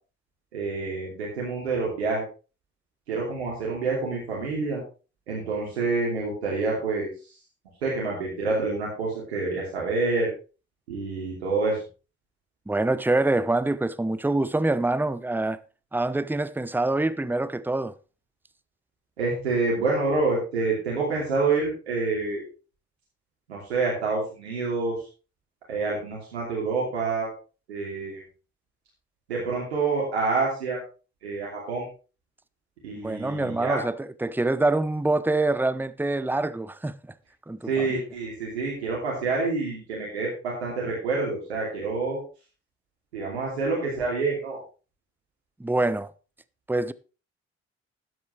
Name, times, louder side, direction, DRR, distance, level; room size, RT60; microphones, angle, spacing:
voice 1, 0.5-2.2 3.1-4.8 5.3-7.1 7.8-10.3 10.9-11.8 19.2-22.4 23.5-25.1 25.7-27.3 27.7-28.2 29.3-30.8 31.2-31.9 32.8-33.8 37.7-42.2 43.1-44.6, right 3 dB, 90° right, 2.9 m, -27 dB
voice 2, 12.7-15.6 15.9-17.9 33.0-37.0 37.5-38.0 45.6-46.1 46.7-46.9, right 2 dB, 5° right, 0.9 m, -25 dB
13.0 x 11.0 x 3.3 m
hypercardioid pair, 40°, 32 cm